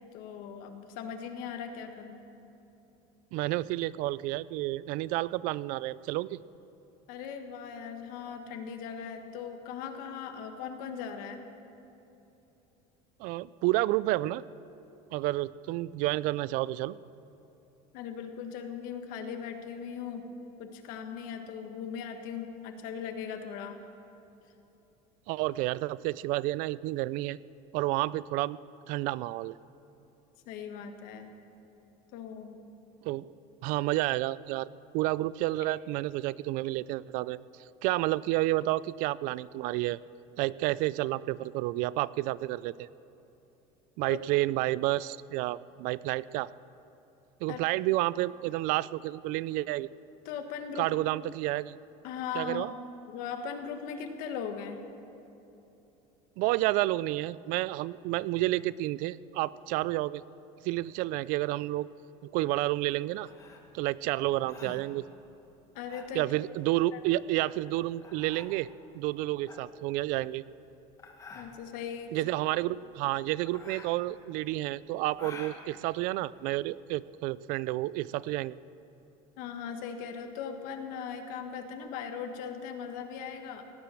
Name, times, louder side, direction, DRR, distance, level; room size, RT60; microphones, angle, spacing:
voice 1, 0.1-2.2 7.1-11.4 17.9-20.2 20.6-23.8 30.4-31.3 32.1-32.6 44.1-44.2 47.5-47.6 50.2-50.9 52.0-52.8 53.1-54.8 65.7-66.2 66.9-67.0 71.3-72.1 79.4-83.6, left 7 dB, 65° left, 5 dB, 1.5 m, -39 dB
voice 2, 3.3-6.4 13.2-14.4 15.1-17.0 25.3-27.4 27.7-28.6 28.9-29.6 33.0-33.3 33.6-37.4 37.8-40.0 40.4-42.9 44.0-46.5 47.4-49.9 50.8-51.8 52.3-52.7 56.4-60.2 60.6-61.9 62.3-63.3 63.7-65.1 66.1-68.7 68.9-70.4 72.1-78.6, right 17 dB, 60° right, 20 dB, 0.4 m, -30 dB
sound 1, 63.2-76.8, left 4 dB, 20° left, 1.6 m, -50 dB
17.5 x 10.5 x 7.7 m, 3.0 s
cardioid pair, 155°, 15 cm